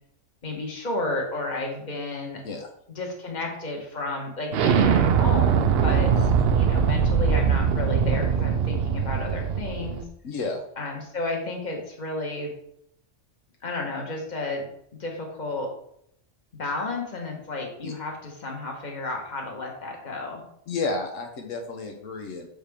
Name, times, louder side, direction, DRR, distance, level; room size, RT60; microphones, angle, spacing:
voice 1, 0.4-2.4 2.9-6.1 6.5-10.0 10.8-12.5 13.6-14.6 15.0-15.7 16.6-20.4, left 2 dB, 35° left, 0 dB, 1.4 m, -32 dB
Explosion, 4.5-10.0, right 7 dB, 60° right, 0.7 m, -22 dB
voice 2, 10.2-10.6 17.8-17.9 20.7-22.5, left 3 dB, 85° left, 3 dB, 1.2 m, -31 dB
6.5 x 5.0 x 3.5 m, 0.71 s
omnidirectional pair, 1.3 m